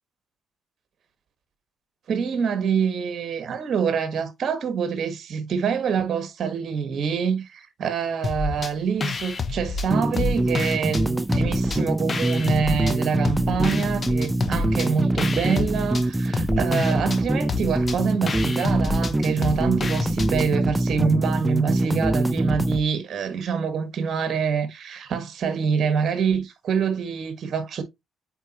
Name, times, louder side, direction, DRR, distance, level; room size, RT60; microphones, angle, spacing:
voice 1, 2.1-27.8, right 6 dB, 60° right, 1.5 m, -26 dB
sound 1, 8.2-8.7 9.0-11.0 11.3-12.9 13.2-20.5, left 3 dB, 35° left, 1.1 m, -29 dB
sound 2, 9.9-22.8, right 1 dB, 10° right, 0.4 m, -24 dB
8.1 x 4.3 x 3.0 m
cardioid pair, 90°, 0 cm